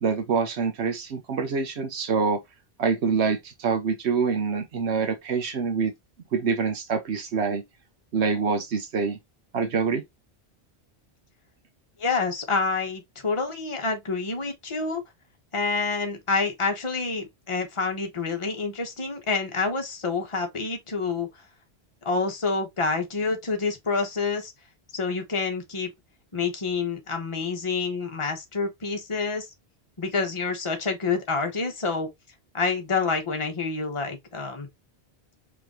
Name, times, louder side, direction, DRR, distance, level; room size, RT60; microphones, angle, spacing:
voice 1, 0.0-2.4 2.8-5.9 6.3-7.6 8.1-9.2 9.5-10.0, right 5 dB, 80° right, 1.2 m, -25 dB
voice 2, 12.0-15.0 15.5-21.3 22.0-24.5 24.9-25.9 26.3-29.5 30.0-32.1 32.5-34.7, left 4 dB, 30° left, 1.1 m, -27 dB
4.9 x 3.3 x 2.9 m
omnidirectional pair, 1.1 m